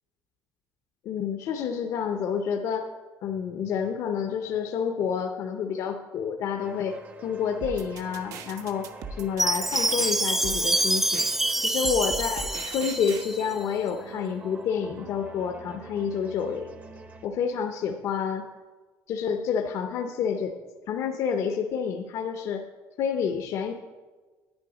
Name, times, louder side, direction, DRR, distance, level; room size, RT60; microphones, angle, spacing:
voice 1, 1.0-2.9 3.2-11.3 11.6-16.7 17.2-18.5 19.1-20.6 20.9-22.6 23.0-23.7, left 7 dB, 55° left, 4 dB, 0.7 m, -29 dB
sound 1, 6.6-17.3, right 3 dB, 25° right, 0.7 m, -46 dB
sound 2, 7.6-13.2, right 5 dB, 60° right, 0.8 m, -39 dB
Chime, 9.4-13.5, right 1 dB, 5° right, 0.3 m, -26 dB
9.7 x 9.3 x 5.0 m, 1.3 s
cardioid pair, 165°, 7 cm